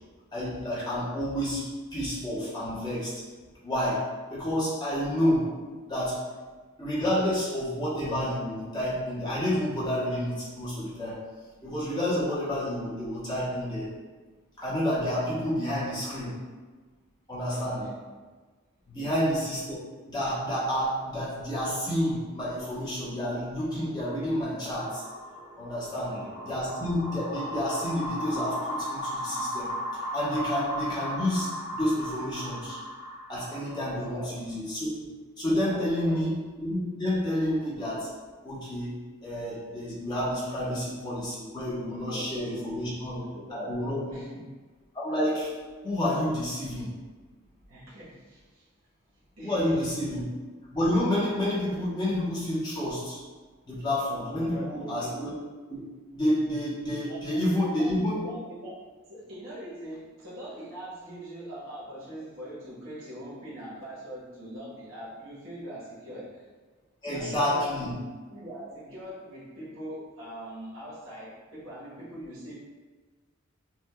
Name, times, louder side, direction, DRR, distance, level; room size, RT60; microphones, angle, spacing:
voice 1, 0.3-1.6 1.9-3.1 3.6-4.0 4.3-5.5 5.9-6.2 6.8-11.2 11.6-13.9 14.6-16.4 17.3-17.8 18.9-19.8 20.1-25.0 25.6-26.1 26.5-32.8 33.3-34.9 35.4-38.1 38.4-38.9 39.2-43.2 43.5-44.1 44.9-45.5 45.8-46.9 49.4-50.2 50.7-53.2 53.6-55.3 55.7-55.8 56.1-58.2 67.0-67.9, left 1 dB, 20° left, -9 dB, 1.2 m, -29 dB
voice 2, 17.5-18.0 18.9-19.3 25.8-26.6 33.8-34.4 35.7-36.2 40.6-40.8 42.0-43.8 44.1-44.5 47.7-48.7 49.4-49.8 54.2-55.2 57.0-58.8 59.1-66.5 67.1-67.8 68.3-72.6, equal, 75° right, -9 dB, 1.5 m, -42 dB
sound 1, 24.7-34.1, equal, 15° right, 0.3 m, -36 dB
6.1 x 2.6 x 2.4 m, 1.4 s
head